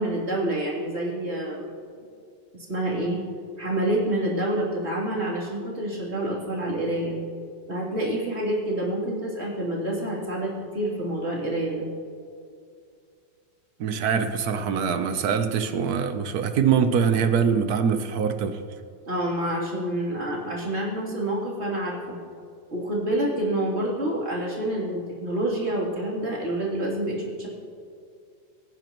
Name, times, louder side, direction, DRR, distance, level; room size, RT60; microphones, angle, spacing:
voice 1, 0.0-1.7 2.7-3.2 3.6-7.2 7.7-11.9 19.0-22.2 22.7-27.5, right 1 dB, 35° right, -5 dB, 3.5 m, -27 dB
voice 2, 13.8-18.6, right 7 dB, 60° right, 8 dB, 1.3 m, -23 dB
25.0 x 10.5 x 3.1 m, 2.3 s
omnidirectional pair, 2.0 m